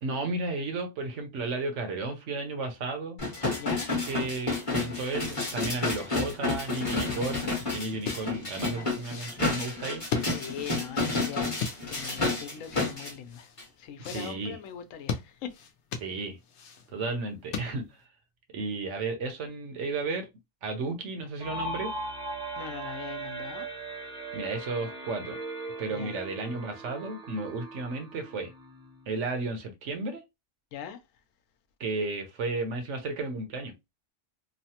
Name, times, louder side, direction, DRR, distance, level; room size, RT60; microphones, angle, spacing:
voice 1, 0.0-3.2 4.1-10.3 14.0-14.6 16.0-16.4 16.9-17.8 18.5-20.3 20.6-21.9 24.3-25.4 25.8-28.5 29.1-30.2 31.8-33.7, right 3 dB, 70° right, 1.1 m, -33 dB
sound 1, 3.2-13.1 13.6-13.7, left 3 dB, 30° left, 1.0 m, -30 dB
voice 2, 3.6-3.9 10.3-11.5 11.9-13.5 13.8-15.5 22.6-23.7 25.9-26.2 30.7-31.0, left 8 dB, 90° left, 1.0 m, -40 dB
sound 2, 7.9-18.1, left 6 dB, 65° left, 0.9 m, -38 dB
sound 3, 21.4-29.0, right 2 dB, 5° right, 0.7 m, -39 dB
3.1 x 2.0 x 2.8 m
omnidirectional pair, 1.3 m